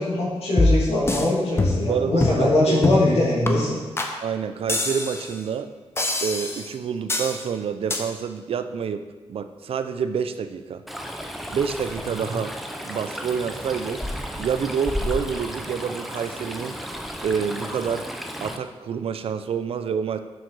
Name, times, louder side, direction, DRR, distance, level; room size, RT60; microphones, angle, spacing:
voice 1, 0.0-3.8, left 1 dB, 75° left, -6 dB, 2.5 m, -22 dB
sound 1, 0.6-1.3 1.6-1.9 2.2-2.5 2.8-3.1 3.5-3.6 4.0-4.1 4.7-5.3 6.0-6.7 7.1-7.4 7.9-8.0, left 2 dB, 25° left, 0.9 m, -23 dB
voice 2, 1.9-2.9 4.2-5.7 6.2-9.0 9.3-10.8 11.5-12.5 12.8-14.0 14.4-16.7 17.2-18.0 18.4-20.2, right 6 dB, 65° right, 10 dB, 0.5 m, -27 dB
Stream, 10.9-18.6, equal, ahead, 0.6 m, -33 dB
6.6 x 6.5 x 4.7 m, 1.3 s
wide cardioid pair, 115°, 11 cm